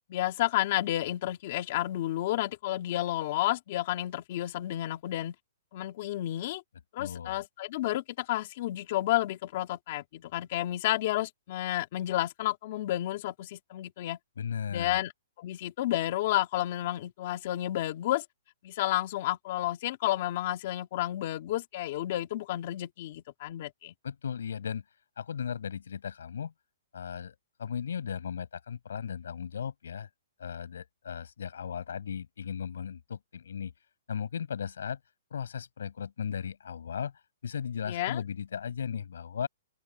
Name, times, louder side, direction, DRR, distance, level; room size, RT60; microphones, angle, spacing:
voice 1, 0.1-5.4 5.7-6.6 6.9-14.2 14.7-15.1 15.4-18.2 18.6-23.9 37.9-38.2, left 14 dB, 35° left, 2.3 m, -31 dB
voice 2, 7.0-7.4 14.4-15.0 24.0-24.8 25.2-26.5 26.9-30.1 30.4-33.7 34.1-35.0 35.3-37.1 37.4-39.5, left 7 dB, 80° left, 6.4 m, -36 dB
open air
hypercardioid pair, 175°, 0 cm